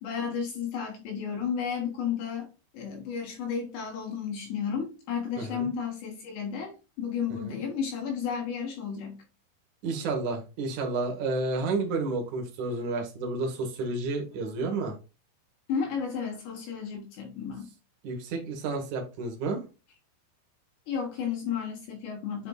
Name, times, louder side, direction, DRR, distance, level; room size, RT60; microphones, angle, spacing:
voice 1, 0.0-2.5 2.7-9.2 15.7-17.7 20.9-22.5, left 7 dB, 70° left, 2 dB, 3.1 m, -33 dB
voice 2, 5.4-5.7 7.4-7.5 9.8-15.0 18.0-19.6, right 3 dB, 85° right, 3 dB, 1.7 m, -31 dB
8.8 x 5.9 x 2.3 m, 0.30 s
omnidirectional pair, 5.7 m